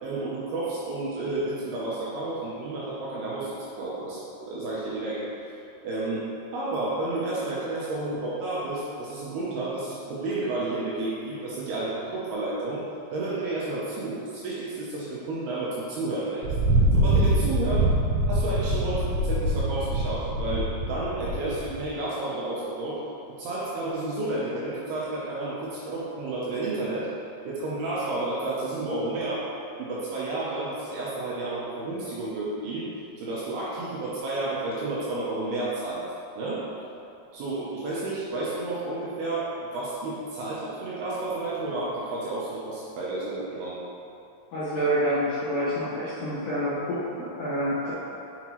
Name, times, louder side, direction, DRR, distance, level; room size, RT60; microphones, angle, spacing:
voice 1, 0.0-5.3 5.8-6.3 6.5-12.8 13.1-16.5 16.9-17.9 18.3-23.0 23.4-27.1 27.5-29.5 29.8-32.9 33.2-36.0 36.4-36.7 37.3-43.8, right 2 dB, 75° right, -7 dB, 2.5 m, -31 dB
Thunder, 16.4-21.9, right 1 dB, 90° right, 3.1 m, -24 dB
voice 2, 44.5-47.9, equal, 70° left, -12 dB, 2.0 m, -27 dB
7.1 x 5.8 x 3.0 m, 2.8 s
omnidirectional pair, 5.2 m